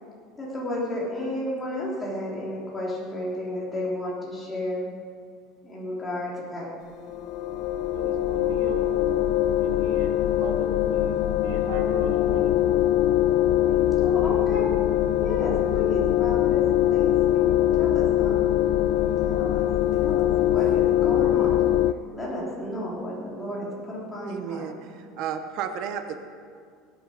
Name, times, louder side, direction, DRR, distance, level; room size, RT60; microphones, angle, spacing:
voice 1, 0.4-4.9 5.6-6.7 14.0-14.7 15.2-18.5 19.3-19.7 20.0-20.2 20.5-21.6 22.1-24.7, left 1 dB, 10° left, -6 dB, 3.4 m, -32 dB
sound 1, 7.1-21.9, left 12 dB, 50° left, 0.3 m, -22 dB
voice 2, 7.9-8.9 9.6-12.8, right 3 dB, 80° right, 2 dB, 2.3 m, -38 dB
voice 3, 24.3-24.8 25.2-26.2, right 8 dB, 50° right, 8 dB, 0.9 m, -32 dB
20.5 x 8.9 x 5.1 m, 2.1 s
cardioid pair, 170°, 0 cm